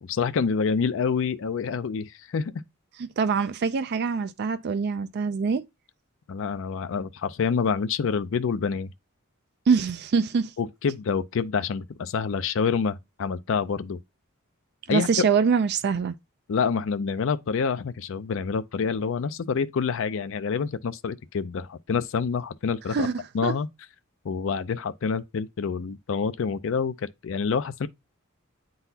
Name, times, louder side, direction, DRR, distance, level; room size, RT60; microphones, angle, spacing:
voice 1, 0.0-2.5 6.3-8.9 10.6-14.0 14.9-15.3 16.5-23.1 23.3-23.7 24.2-27.9, left 5 dB, 65° left, 0.4 m, -27 dB
voice 2, 3.0-5.6 9.7-10.5 14.9-16.1 22.9-23.5, right 5 dB, 55° right, 0.4 m, -24 dB
8.9 x 3.9 x 2.7 m
head